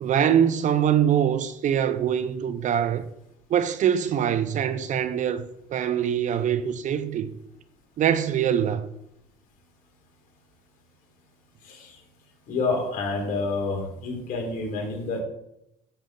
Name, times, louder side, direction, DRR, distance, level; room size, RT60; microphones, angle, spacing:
voice 1, 0.0-3.1 3.5-5.4 5.7-7.3 8.0-8.8, right 9 dB, 50° right, 0.8 m, -23 dB
voice 2, 11.6-11.9 12.5-15.2, left 3 dB, 55° left, 3.9 m, -28 dB
10.5 x 7.1 x 3.9 m
supercardioid pair, 90°, 17 cm